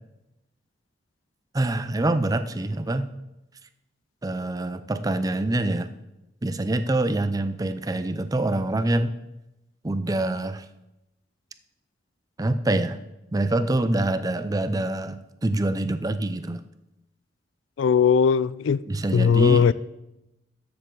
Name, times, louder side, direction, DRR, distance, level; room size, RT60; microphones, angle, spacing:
voice 1, 1.5-3.1 4.2-5.9 6.4-9.1 9.8-10.6 12.4-13.0 13.3-16.6 18.9-19.6, right 2 dB, 20° right, 0.5 m, -25 dB
voice 2, 17.8-18.8 19.1-19.7, left 6 dB, 90° left, 0.3 m, -19 dB
13.0 x 6.9 x 3.9 m
head